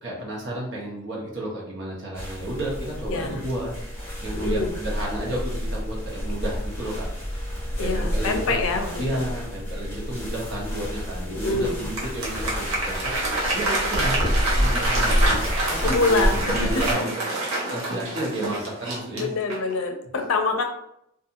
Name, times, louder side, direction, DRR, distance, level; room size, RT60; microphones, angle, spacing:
voice 1, 0.0-7.1 7.8-8.6 9.0-14.3 14.6-17.1 17.7-19.3, right 1 dB, 60° right, -4 dB, 1.0 m, -32 dB
sound 1, 2.1-16.9, equal, 15° left, 1.0 m, -29 dB
voice 2, 3.1-3.4 4.3-4.8 7.8-9.3 11.3-11.9 15.8-17.0 19.1-20.6, left 3 dB, 80° left, 5 dB, 0.5 m, -26 dB
Applause, 11.7-19.8, right 2 dB, 90° right, 0.8 m, -27 dB
2.8 x 2.5 x 2.5 m, 0.76 s
head